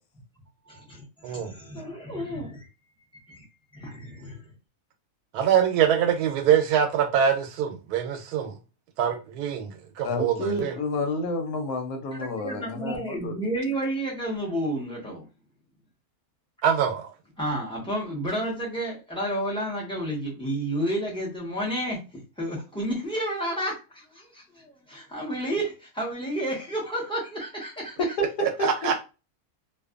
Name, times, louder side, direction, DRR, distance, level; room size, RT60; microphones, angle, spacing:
voice 1, 0.7-2.6 3.3-3.4 3.7-4.5 12.1-15.3 17.4-28.0, right 1 dB, 5° left, 0.7 m, -31 dB
voice 2, 5.3-8.5 9.0-10.7 16.6-17.1 28.4-28.9, right 8 dB, 85° right, 1.1 m, -24 dB
voice 3, 10.0-13.3 28.0-28.2 28.8-28.9, left 2 dB, 80° left, 1.2 m, -29 dB
2.5 x 2.5 x 2.4 m
omnidirectional pair, 1.6 m